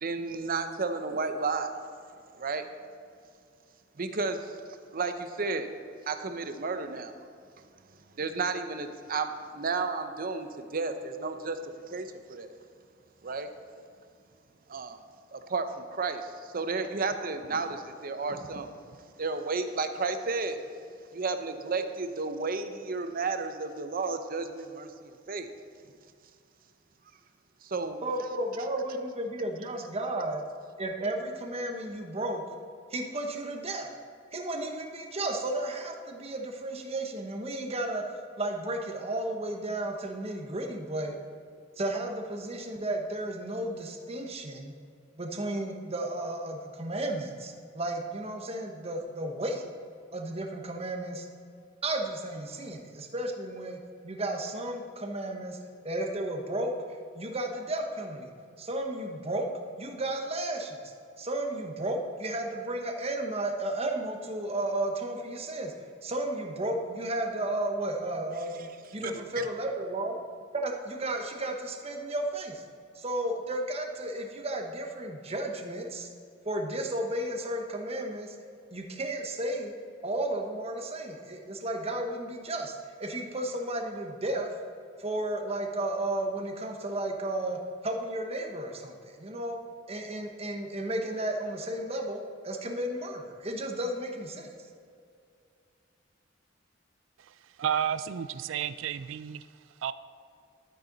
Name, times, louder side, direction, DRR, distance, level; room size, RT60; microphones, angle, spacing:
voice 1, 0.0-1.7 2.4-2.7 4.0-4.5 4.9-5.7 6.1-7.2 8.2-11.6 11.9-12.5 13.2-13.5 14.7-15.0 15.3-18.7 19.0-20.6 21.1-25.5 27.6-28.4 69.0-69.5, right 4 dB, 50° right, 8 dB, 0.7 m, -32 dB
voice 2, 28.0-30.4 30.8-32.4 32.9-33.9 34.3-38.0 38.4-41.1 41.8-44.7 45.2-49.6 50.1-51.2 51.8-55.6 55.8-56.7 57.1-58.3 58.6-59.5 59.8-60.8 61.2-65.7 66.0-70.1 70.5-72.6 72.9-76.1 76.4-78.4 78.7-79.8 80.0-82.7 83.0-84.5 85.0-89.6 89.9-94.5, right 1 dB, 35° right, 3 dB, 1.1 m, -33 dB
voice 3, 97.6-99.4 99.8-99.9, right 8 dB, 85° right, 15 dB, 0.4 m, -31 dB
12.0 x 9.0 x 4.0 m, 2.4 s
head